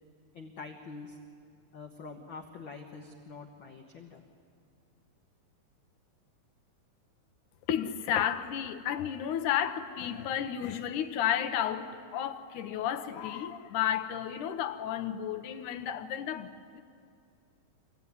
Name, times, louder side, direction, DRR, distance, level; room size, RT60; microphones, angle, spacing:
voice 1, 0.3-1.2 1.7-4.2, left 4 dB, 60° left, 1.3 m, -45 dB
voice 2, 7.7-16.8, left 10 dB, 75° left, 2.2 m, -32 dB
25.0 x 16.5 x 9.5 m
omnidirectional pair, 3.8 m